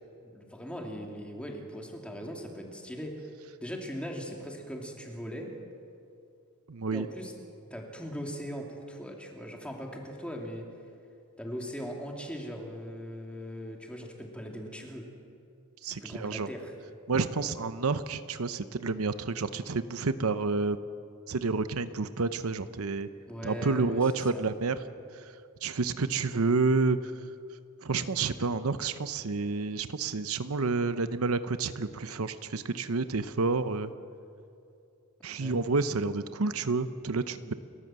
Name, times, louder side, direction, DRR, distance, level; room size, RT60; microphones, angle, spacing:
voice 1, 0.1-3.3 3.6-5.5 6.9-7.3 7.7-10.7 11.4-15.1 15.8-16.7 23.3-24.0 24.3-24.4 35.4-35.6, equal, 5° left, 1 dB, 2.7 m, -39 dB
voice 2, 6.7-7.1 15.8-16.5 17.1-20.8 21.3-23.1 23.4-24.8 25.1-27.2 27.8-33.9 35.2-37.5, right 4 dB, 70° right, 12 dB, 0.8 m, -29 dB
29.5 x 13.5 x 7.6 m, 2.5 s
head